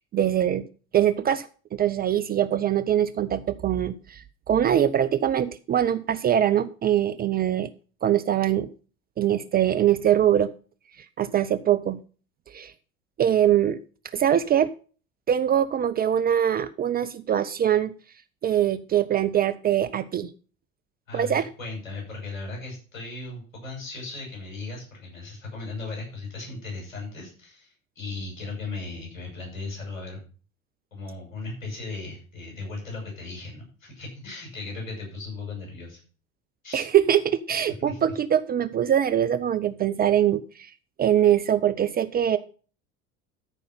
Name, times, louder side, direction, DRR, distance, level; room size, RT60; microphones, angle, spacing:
voice 1, 0.1-0.7 0.9-7.7 8.0-8.7 9.2-10.5 11.2-12.0 12.5-12.7 13.2-13.8 14.1-14.7 15.3-17.9 18.4-20.3 21.1-21.5 36.7-40.4 41.0-42.4, right 10 dB, 25° right, 13 dB, 0.5 m, -23 dB
voice 2, 21.1-30.2 30.9-36.0 36.6-36.8 37.8-38.0, left 3 dB, 70° left, 0 dB, 6.2 m, -37 dB
13.5 x 5.3 x 5.7 m, 0.38 s
figure-of-eight pair, 70°, 41 cm